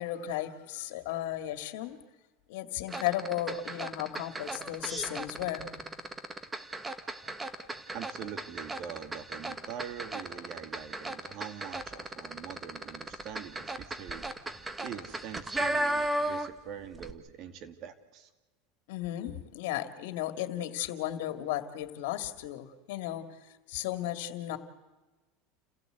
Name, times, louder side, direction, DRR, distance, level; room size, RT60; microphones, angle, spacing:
voice 1, 0.0-2.0 2.5-5.9 18.9-23.2 23.7-24.6, left 12 dB, 75° left, 9 dB, 2.2 m, -35 dB
sound 1, 2.9-16.7 16.9-17.1, right 1 dB, 15° right, 1.5 m, -36 dB
voice 2, 7.9-14.3 14.8-18.3, right 9 dB, 50° right, 9 dB, 2.5 m, -44 dB
29.5 x 16.0 x 8.1 m, 1.2 s
supercardioid pair, 120°, 0 cm